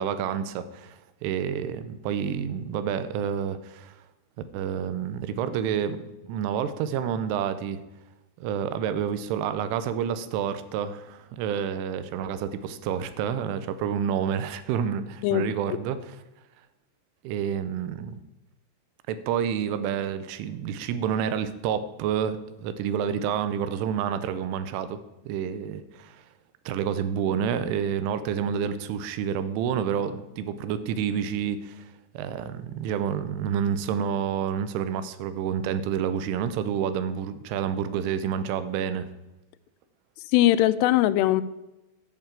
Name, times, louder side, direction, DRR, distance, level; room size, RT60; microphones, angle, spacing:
voice 1, 0.0-3.9 4.5-7.8 8.4-16.0 17.2-18.2 19.1-25.0 25.3-26.2 26.7-31.9 32.1-39.1, right 8 dB, 85° right, 12 dB, 3.3 m, -29 dB
voice 2, 15.2-15.8 40.3-41.4, left 14 dB, 90° left, 13 dB, 3.1 m, -21 dB
11.0 x 5.8 x 8.8 m, 0.97 s
omnidirectional pair, 5.5 m